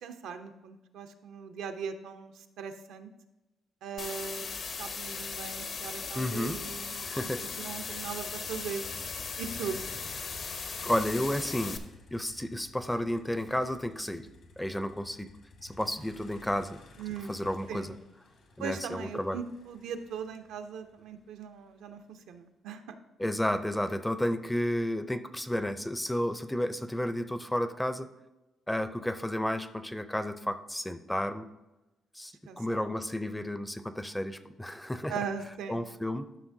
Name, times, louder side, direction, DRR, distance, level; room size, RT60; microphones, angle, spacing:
voice 1, 0.0-3.1 3.8-4.5 4.8-8.8 9.4-9.8 17.0-17.4 17.7-17.9 18.6-22.9 32.5-32.8 35.1-35.8, right 6 dB, 85° right, 7 dB, 0.6 m, -39 dB
sound 1, 4.0-11.8, left 5 dB, 55° left, 0.7 m, -38 dB
Motor vehicle (road), 6.0-22.2, left 2 dB, 70° left, 1.5 m, -54 dB
voice 2, 6.2-6.6 7.1-7.4 10.8-11.8 12.1-14.3 14.6-15.3 15.6-16.8 17.3-18.0 18.6-19.4 23.2-28.1 28.7-31.5 32.2-35.1 35.7-36.3, left 1 dB, 5° left, 12 dB, 0.4 m, -32 dB
11.5 x 5.8 x 2.7 m, 1.0 s
cardioid pair, 90°, 0 cm